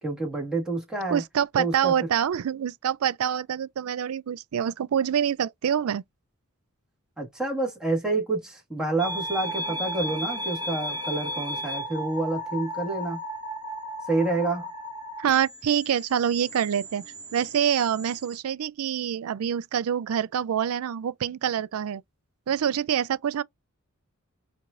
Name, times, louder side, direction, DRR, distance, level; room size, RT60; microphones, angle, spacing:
voice 1, 0.0-1.2 1.6-1.9 7.2-13.2 14.1-14.7, right 2 dB, 5° right, 1.7 m, -28 dB
voice 2, 1.1-6.0 15.2-17.0 17.3-22.0 22.5-23.4, right 9 dB, 85° right, 0.4 m, -26 dB
sound 1, 9.0-18.4, equal, 20° right, 1.3 m, -35 dB
4.7 x 2.6 x 2.5 m
head